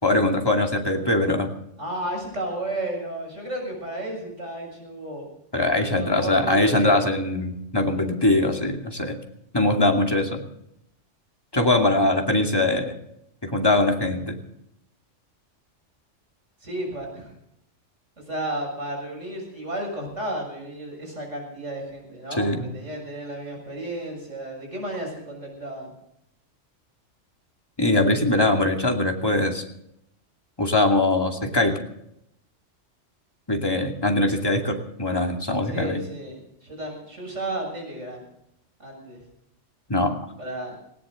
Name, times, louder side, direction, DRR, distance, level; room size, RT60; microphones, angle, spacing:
voice 1, 0.0-1.5 5.5-9.2 9.5-10.4 11.5-12.9 13.4-14.4 22.4-22.7 27.8-29.6 30.6-31.8 33.5-36.0 39.9-40.2, left 2 dB, 20° left, 2 dB, 2.5 m, -22 dB
voice 2, 1.8-5.3 6.0-7.0 16.6-17.3 18.2-25.9 35.6-38.3 38.8-39.2 40.4-40.8, right 1 dB, 75° right, 1 dB, 7.2 m, -33 dB
19.0 x 18.0 x 3.9 m, 0.76 s
omnidirectional pair, 1.3 m